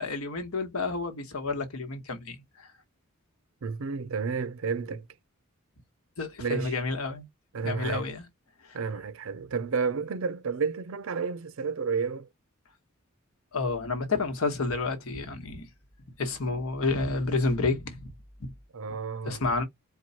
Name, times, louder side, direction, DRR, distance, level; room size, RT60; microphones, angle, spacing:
voice 1, 0.0-2.7 6.2-7.3 7.6-8.2 8.7-8.8 13.5-15.7 16.2-18.1 18.4-18.5 19.2-19.6, left 3 dB, 85° left, 1.2 m, -30 dB
voice 2, 3.6-5.1 6.4-6.8 7.5-8.1 8.7-12.3 18.7-19.4, right 5 dB, 65° right, 0.5 m, -31 dB
4.5 x 2.2 x 4.1 m
head